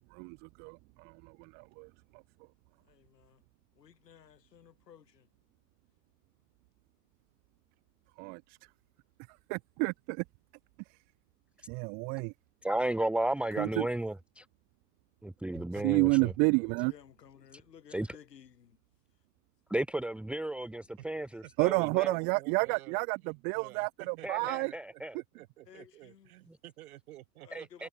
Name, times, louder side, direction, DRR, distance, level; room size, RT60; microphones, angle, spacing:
voice 1, 0.1-2.2 8.2-8.6 9.5-10.2 10.9-11.0 11.7-12.3 13.6-13.9 15.8-16.9 21.6-24.7, right 33 dB, 20° right, 0.4 m, -30 dB
voice 2, 2.8-3.4 3.8-5.3 16.7-18.8 24.4-24.6 25.7-26.3 27.4-27.9, left 9 dB, 80° left, 4.2 m, -56 dB
voice 3, 12.6-14.5 15.2-16.3 17.5-17.6 17.9-18.2 19.7-22.2 24.2-25.2 26.5-26.6 27.5-27.9, right 1 dB, ahead, 1.1 m, -34 dB
voice 4, 15.5-16.7 21.4-27.9, right 15 dB, 60° right, 4.6 m, -51 dB
hypercardioid pair, 115°, 48 cm